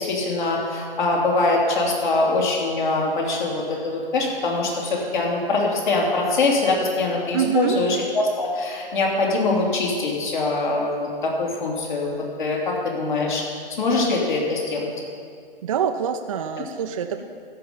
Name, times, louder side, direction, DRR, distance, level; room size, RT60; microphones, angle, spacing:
voice 1, 0.0-12.1 12.4-13.4 13.8-14.9, left 2 dB, 55° left, -2 dB, 3.0 m, -23 dB
voice 2, 7.3-7.8 15.6-17.2, right 8 dB, 35° right, 5 dB, 0.5 m, -25 dB
13.5 x 5.4 x 8.7 m, 2.2 s
figure-of-eight pair, 140°, 30 cm